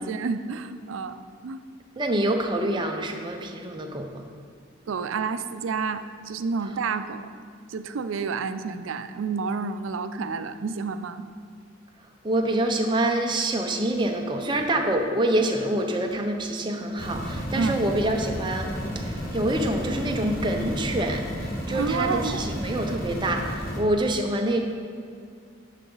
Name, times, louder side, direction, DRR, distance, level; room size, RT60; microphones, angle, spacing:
voice 1, 0.0-1.6 4.9-7.3 7.7-11.2 17.6-17.8 21.7-22.6, right 4 dB, 80° right, 11 dB, 0.4 m, -29 dB
voice 2, 2.0-4.2 12.2-24.6, right 1 dB, 25° right, 2 dB, 0.7 m, -26 dB
sound 1, 17.0-23.8, equal, 50° left, 1.2 m, -32 dB
10.0 x 5.8 x 3.9 m, 2.3 s
head